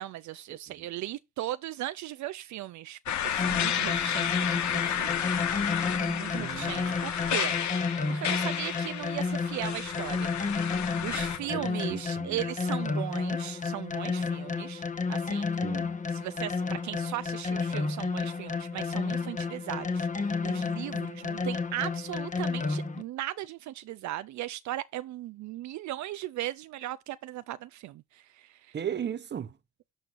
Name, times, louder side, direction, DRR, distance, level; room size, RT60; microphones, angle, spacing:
voice 1, 0.0-5.4 6.0-10.6 11.0-14.8 15.1-15.5 16.1-28.8, right 14 dB, 70° right, 0.4 m, -38 dB
sound 1, 3.1-11.4, left 9 dB, 65° left, 1.1 m, -31 dB
sound 2, 3.4-23.0, left 4 dB, 25° left, 1.0 m, -31 dB
voice 2, 6.3-7.0 11.4-12.4 15.6-16.0 19.2-19.4 28.7-29.5, right 8 dB, 35° right, 0.7 m, -37 dB
13.0 x 4.5 x 2.5 m
cardioid pair, 90°, 30 cm